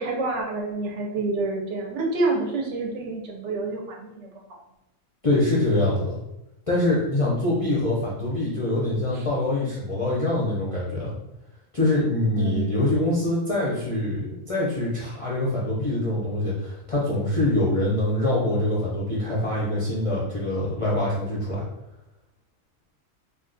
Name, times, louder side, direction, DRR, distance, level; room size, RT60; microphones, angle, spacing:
voice 1, 0.0-4.3 9.1-9.3 12.4-12.7, right 3 dB, 70° right, 1 dB, 0.8 m, -28 dB
voice 2, 5.2-6.2 6.7-11.1 11.7-21.6, left 1 dB, 45° left, -7 dB, 0.4 m, -24 dB
2.5 x 2.3 x 3.8 m, 0.89 s
omnidirectional pair, 1.4 m